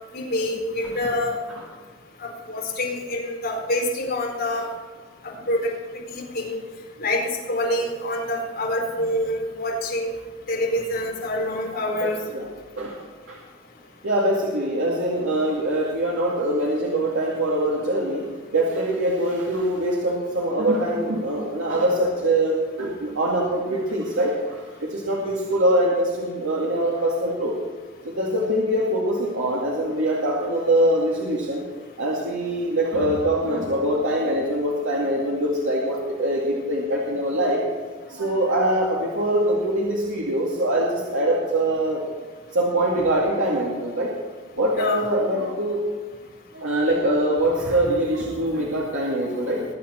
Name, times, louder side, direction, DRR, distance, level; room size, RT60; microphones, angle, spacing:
voice 1, 0.1-1.4 2.2-4.7 5.5-5.7 6.1-6.6 7.0-7.2 7.5-10.1 10.5-12.2 44.8-45.1, left 1 dB, 50° left, -3 dB, 4.5 m, -26 dB
voice 2, 12.0-12.5 12.8-13.0 13.3-13.4 14.0-27.6 28.0-31.6 32.0-37.6 38.1-42.1 42.5-44.1 44.6-45.8 46.5-49.6, right 1 dB, 80° right, -3 dB, 2.2 m, -23 dB
21.5 x 8.8 x 4.4 m, 1.5 s
head